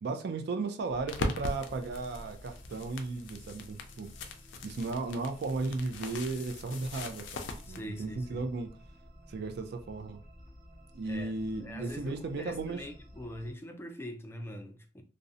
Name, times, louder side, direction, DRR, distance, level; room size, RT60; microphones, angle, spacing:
voice 1, 0.0-4.1 4.6-8.7 9.3-10.2 10.9-12.8, right 3 dB, 60° right, 0.4 m, -35 dB
sound 1, 0.9-13.5, equal, 40° right, 1.0 m, -53 dB
sound 2, 1.1-7.8, left 2 dB, 80° left, 0.4 m, -40 dB
voice 2, 7.7-8.4 11.1-11.3 11.6-15.0, equal, 15° left, 0.3 m, -43 dB
2.5 x 2.0 x 2.6 m
head